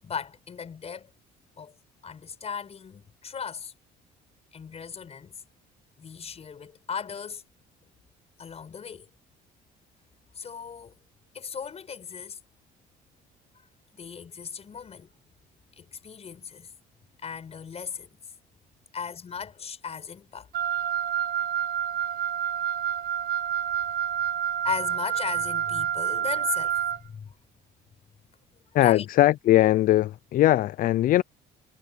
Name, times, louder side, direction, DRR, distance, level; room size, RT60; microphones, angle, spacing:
voice 1, 0.0-1.1 1.6-1.7 2.0-3.7 4.5-5.4 6.0-7.4 8.4-9.1 10.3-10.9 11.3-12.4 13.9-15.1 15.8-16.7 17.2-18.1 18.9-20.5 22.0-22.1 24.6-27.3 28.8-29.1, left 6 dB, 40° left, 6.6 m, -37 dB
Wind instrument woodwind instrument, 20.5-27.0, right 9 dB, 65° right, 1.3 m, -28 dB
voice 2, 28.7-31.2, left 14 dB, 55° left, 0.4 m, -20 dB
cardioid pair, 110°, 17 cm